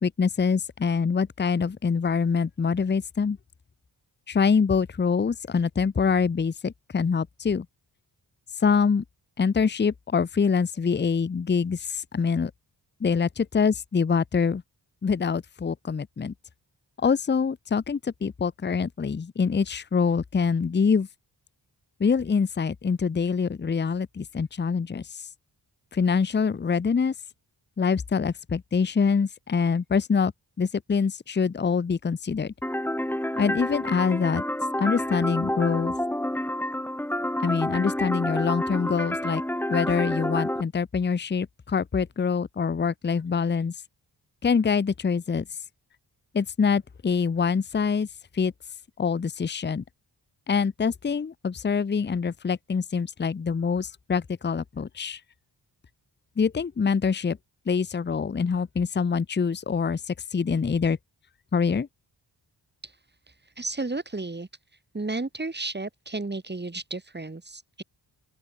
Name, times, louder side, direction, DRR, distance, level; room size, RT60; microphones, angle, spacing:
voice 1, 0.0-3.4 4.3-7.7 8.6-9.0 9.4-12.5 13.0-14.6 15.0-16.3 17.0-21.1 22.0-25.2 25.9-27.1 27.8-30.3 30.6-32.5 33.3-34.4 34.8-35.9 37.4-39.4 39.7-43.7 44.4-45.5 46.3-48.1 48.3-48.5 49.0-49.8 50.5-55.2 56.4-57.4 57.7-61.0 61.5-61.9, left 5 dB, 25° left, 0.6 m, -25 dB
sound 1, 32.6-40.6, left 1 dB, 5° left, 2.6 m, -29 dB
voice 2, 63.6-64.5 64.9-67.8, right 3 dB, 25° right, 5.2 m, -33 dB
open air
wide cardioid pair, 130°, 42 cm